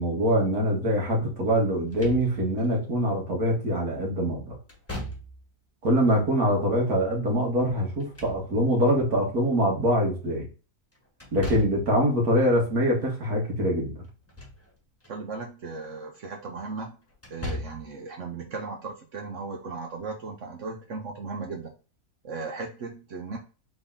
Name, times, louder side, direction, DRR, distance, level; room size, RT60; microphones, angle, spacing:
voice 1, 0.0-4.6 5.8-10.5 11.3-14.0, equal, 85° right, -1 dB, 2.1 m, -24 dB
Slam / Thump thud, 1.8-2.7 4.7-5.6 7.8-8.9 11.2-12.0 14.1-14.7 15.0-15.1 17.1-18.0, left 1 dB, 10° left, 1.2 m, -37 dB
voice 2, 15.1-17.0 17.3-21.7 22.2-23.4, right 4 dB, 60° right, 2 dB, 1.0 m, -36 dB
3.9 x 3.6 x 3.6 m, 0.35 s
omnidirectional pair, 1.6 m